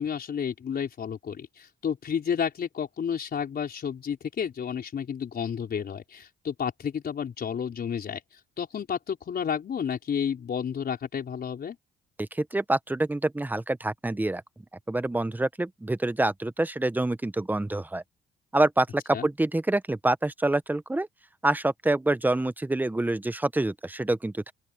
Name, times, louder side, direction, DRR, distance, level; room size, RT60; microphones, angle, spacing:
voice 1, 0.0-11.8 19.1-19.3, left 7 dB, 50° left, 4.6 m, -31 dB
voice 2, 12.2-14.4 14.9-18.0 18.5-21.1 21.4-24.5, right 2 dB, 10° right, 0.9 m, -26 dB
open air
cardioid pair, 90°, 20 cm